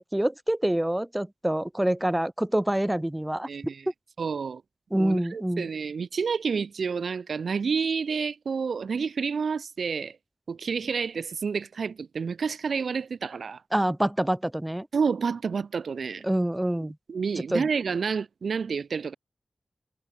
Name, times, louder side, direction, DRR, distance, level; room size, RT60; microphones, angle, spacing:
voice 1, 0.0-3.5 4.9-5.7 13.7-14.9 16.2-17.0 17.5-17.7, right 1 dB, 15° right, 0.4 m, -26 dB
voice 2, 3.5-3.8 4.2-4.6 4.9-10.2 10.5-13.6 14.9-16.3 17.1-19.1, right 5 dB, 90° right, 0.3 m, -29 dB
cardioid pair, 60°, 0 cm